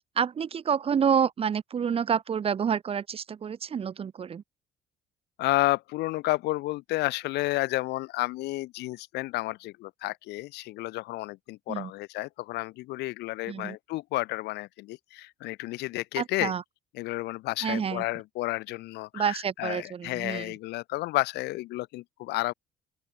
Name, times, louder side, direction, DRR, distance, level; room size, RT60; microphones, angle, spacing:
voice 1, 0.2-4.4 11.7-11.9 13.5-13.8 16.2-16.6 17.6-18.0 19.1-20.5, right 7 dB, 35° right, 0.8 m, -28 dB
voice 2, 5.4-16.5 16.9-22.5, left 19 dB, 80° left, 0.8 m, -31 dB
open air
cardioid pair, 110°, 17 cm